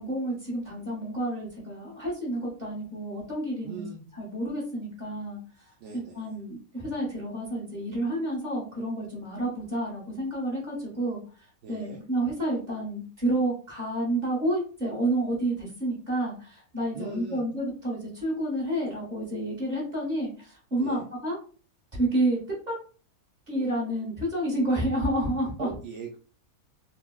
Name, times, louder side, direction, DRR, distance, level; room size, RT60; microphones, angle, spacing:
voice 1, 0.0-3.9 4.1-5.4 5.9-21.4 21.9-22.4 22.7-22.8 23.5-25.7, right 1 dB, 30° right, -4 dB, 1.3 m, -30 dB
voice 2, 3.6-4.0 5.8-6.2 11.6-12.0 16.9-17.4 20.8-21.1 25.6-26.2, right 5 dB, 65° right, 0 dB, 0.7 m, -40 dB
4.0 x 2.1 x 2.2 m, 0.39 s
omnidirectional pair, 1.6 m